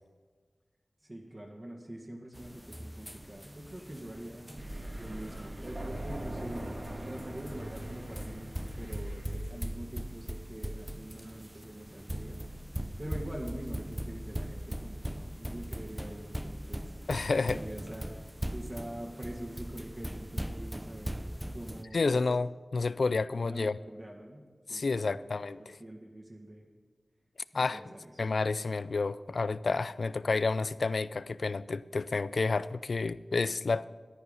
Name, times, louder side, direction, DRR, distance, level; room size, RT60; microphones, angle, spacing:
voice 1, 1.0-4.5 5.0-12.4 13.0-16.9 17.3-18.3 18.5-21.2 21.5-22.2 23.4-26.7 27.5-28.2, right 1 dB, 35° right, 2.0 m, -44 dB
sound 1, 2.3-21.8, equal, 10° right, 0.7 m, -40 dB
Thunder, 4.6-9.4, right 1 dB, 50° right, 1.8 m, -41 dB
voice 2, 17.1-17.6 21.9-23.8 24.7-25.6 27.5-27.8 28.2-33.8, left 3 dB, 75° left, 0.4 m, -30 dB
14.0 x 10.0 x 5.6 m
cardioid pair, 45°, 0 cm